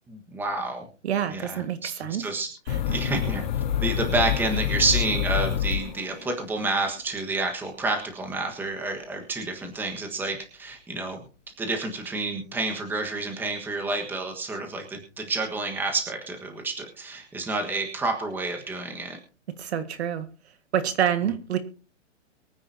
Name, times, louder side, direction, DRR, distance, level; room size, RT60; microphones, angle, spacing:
voice 1, 0.1-0.9 1.3-1.9 2.2-2.5 2.7-3.5 3.8-11.2 11.6-19.2, right 3 dB, 5° right, 3 dB, 1.5 m, -29 dB
voice 2, 1.0-2.3 2.7-2.8 19.6-20.3 20.7-21.6, right 9 dB, 55° right, 10 dB, 1.8 m, -27 dB
sound 1, 2.7-6.4, left 10 dB, 35° left, 1.2 m, -27 dB
23.5 x 9.8 x 2.8 m, 0.36 s
hypercardioid pair, 155°, 38 cm